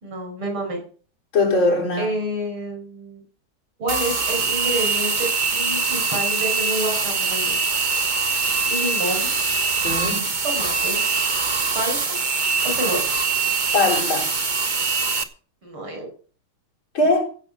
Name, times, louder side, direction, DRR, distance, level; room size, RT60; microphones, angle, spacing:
voice 1, 0.0-0.8 2.0-3.2 3.8-7.6 8.7-9.3 10.4-11.0 11.7-12.2 12.6-13.0 15.6-16.1, right 1 dB, 75° right, 6.1 m, -28 dB
voice 2, 1.3-2.1 9.8-10.3 13.7-14.3 16.9-17.2, left 2 dB, 70° left, 4.5 m, -20 dB
sound 1, 3.9-15.2, right 4 dB, 30° right, 1.0 m, -23 dB
15.5 x 7.6 x 7.0 m
omnidirectional pair, 2.3 m